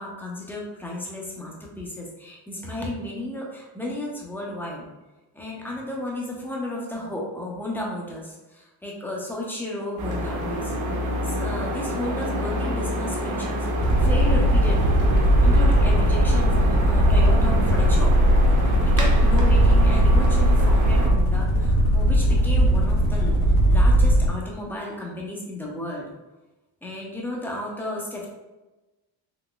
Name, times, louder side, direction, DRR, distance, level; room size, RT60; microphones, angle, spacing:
voice 1, 0.0-4.8 5.3-10.7 11.2-15.0 15.4-18.2 19.0-26.1 26.8-28.3, left 1 dB, 5° left, -2 dB, 0.3 m, -33 dB
sound 1, 10.0-21.1, equal, 40° right, 0.6 m, -27 dB
sound 2, 13.7-24.4, right 1 dB, 75° left, 1.1 m, -18 dB
3.9 x 2.8 x 2.3 m, 1.1 s
cardioid pair, 150°, 48 cm